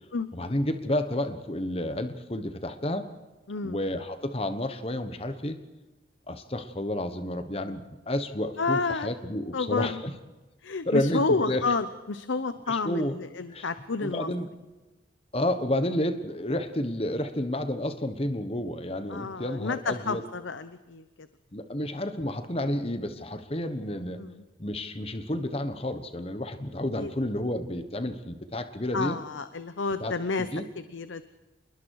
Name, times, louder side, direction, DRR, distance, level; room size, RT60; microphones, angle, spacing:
voice 1, 0.3-3.1 3.6-5.6 6.3-10.1 10.8-11.6 12.7-13.2 13.5-13.7 14.0-14.5 15.3-20.2 21.5-24.2 24.6-29.2 30.0-30.6, left 1 dB, 30° left, 9 dB, 1.3 m, -30 dB
voice 2, 3.5-3.8 8.6-9.1 9.5-10.0 10.6-14.3 19.1-21.0 24.2-24.4 26.9-27.1 28.9-30.5 30.9-31.2, left 4 dB, 90° left, 12 dB, 0.9 m, -30 dB
27.5 x 21.0 x 4.8 m, 1.1 s
head